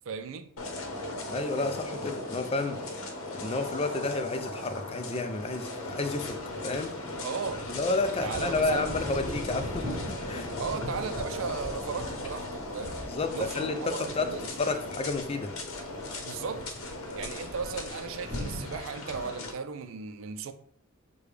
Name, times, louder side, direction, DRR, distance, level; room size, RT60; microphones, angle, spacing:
voice 1, 0.1-0.5 7.2-7.6 8.2-8.9 10.6-12.5 12.7-13.0 13.3-14.5 16.2-16.7 17.1-20.5, right 5 dB, 65° right, 0.4 m, -36 dB
sound 1, 0.6-19.5, left 2 dB, 80° left, 0.8 m, -38 dB
voice 2, 1.3-3.0 3.3-6.4 6.6-6.9 7.7-10.5 13.1-15.5, left 3 dB, 30° left, 0.4 m, -31 dB
Thunder / Rain, 3.9-4.0 6.9-18.6, equal, 20° right, 1.1 m, -41 dB
6.6 x 2.2 x 3.2 m
head